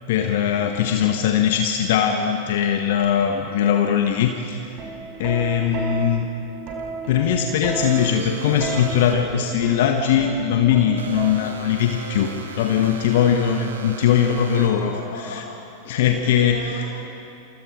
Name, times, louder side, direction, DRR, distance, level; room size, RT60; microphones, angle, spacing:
voice 1, 0.1-4.6 5.2-6.3 7.1-15.0 15.3-15.4 15.9-16.6, left 9 dB, 55° left, 4 dB, 1.6 m, -20 dB
Plucked string instrument, 4.8-11.8 12.9-13.2, right 4 dB, 35° right, 7.8 m, -33 dB
sound 1, 7.8-14.9, right 5 dB, 65° right, 2.7 m, -37 dB
voice 2, 14.9-17.0, left 2 dB, 75° left, 0 dB, 6.3 m, -37 dB
29.0 x 28.5 x 5.1 m, 2.9 s
figure-of-eight pair, 90°, 0 cm